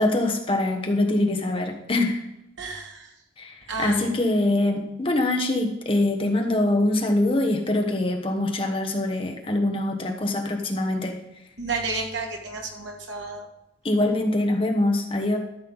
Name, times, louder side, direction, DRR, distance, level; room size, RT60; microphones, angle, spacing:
voice 1, 0.0-2.2 3.4-11.2 13.8-15.4, left 1 dB, 25° left, 3 dB, 1.1 m, -24 dB
voice 2, 2.6-3.1 3.7-4.1 11.6-13.5, right 3 dB, 70° right, 1 dB, 2.1 m, -31 dB
13.5 x 6.5 x 4.0 m, 0.88 s
head